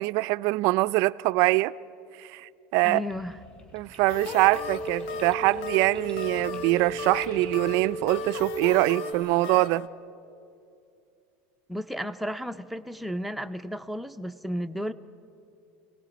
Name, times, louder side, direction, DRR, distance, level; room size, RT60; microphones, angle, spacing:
voice 1, 0.0-1.7 2.2-3.0 3.7-9.9, right 20 dB, 60° right, 0.4 m, -24 dB
voice 2, 2.8-3.4 11.7-14.9, equal, ahead, 0.5 m, -33 dB
sound 1, 3.1-8.7, left 2 dB, 20° left, 5.7 m, -51 dB
Processed Intro Music, 4.1-9.9, left 7 dB, 75° left, 0.9 m, -39 dB
sound 2, 4.1-9.1, right 1 dB, 50° left, 3.7 m, -35 dB
29.5 x 18.0 x 5.1 m
supercardioid pair, 140°, 6 cm